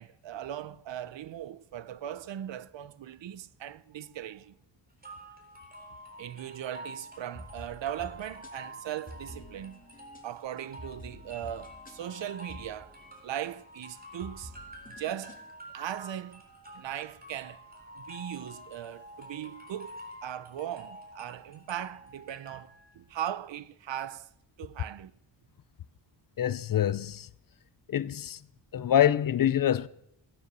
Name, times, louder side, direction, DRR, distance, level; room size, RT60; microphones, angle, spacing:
voice 1, 0.0-4.5 6.2-9.8 10.2-13.0 13.2-14.5 14.9-15.4 15.7-16.4 16.7-17.6 18.0-24.3 24.6-25.1, right 11 dB, 70° right, 0.8 m, -39 dB
sound 1, 5.0-23.0, equal, 20° right, 3.6 m, -49 dB
sound 2, 7.2-13.6 14.0-15.5, left 1 dB, 20° left, 2.4 m, -49 dB
voice 2, 26.4-27.3 27.9-28.4 28.7-29.9, left 10 dB, 50° left, 0.5 m, -25 dB
17.0 x 9.3 x 6.7 m
wide cardioid pair, 120°, 46 cm